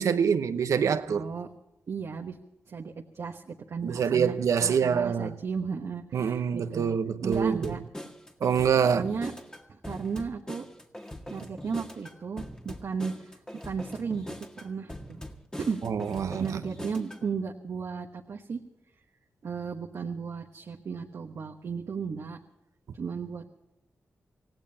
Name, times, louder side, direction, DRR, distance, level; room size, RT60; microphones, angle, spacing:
voice 1, 0.0-1.2 3.8-5.3 6.1-7.7 8.4-9.0 15.8-16.6, right 7 dB, 80° right, 1.0 m, -25 dB
voice 2, 1.1-1.5 1.9-2.4 2.7-6.9 7.2-7.8 8.9-9.3 9.7-10.6 11.3-13.3 13.6-14.3 14.6-15.2 15.7-15.8 16.1-18.6 19.4-22.4 22.9-23.5, right 5 dB, 65° right, 1.2 m, -35 dB
sound 1, 7.3-17.3, left 1 dB, 15° left, 1.8 m, -42 dB
25.5 x 17.0 x 2.8 m
cardioid pair, 65°, 5 cm